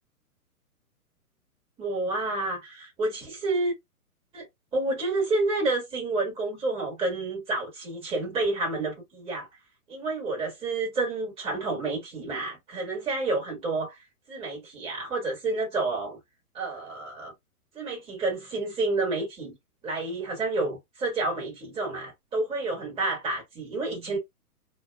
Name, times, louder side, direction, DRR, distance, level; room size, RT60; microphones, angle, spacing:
voice 1, 1.8-3.7 4.3-4.5 4.7-9.5 9.9-14.0 14.3-16.2 16.5-17.3 17.7-19.6 19.8-24.2, right 2 dB, 15° right, 1.4 m, -29 dB
2.9 x 2.3 x 2.2 m
hypercardioid pair, 140°, 45 cm